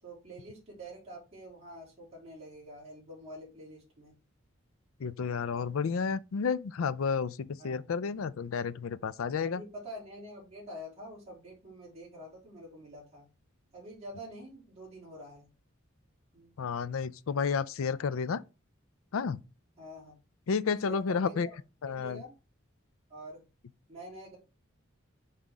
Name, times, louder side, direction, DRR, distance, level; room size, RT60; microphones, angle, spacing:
voice 1, 0.0-4.1 7.6-7.8 9.4-13.2 13.7-15.5 16.3-16.5 19.8-20.1 20.8-21.5 21.8-22.3 23.1-23.4 23.9-24.4, equal, 30° right, 3.1 m, -46 dB
voice 2, 5.0-9.6 16.6-18.4 19.1-19.4 20.5-21.5 21.8-22.2, left 5 dB, 85° left, 0.4 m, -31 dB
5.7 x 5.0 x 3.5 m
head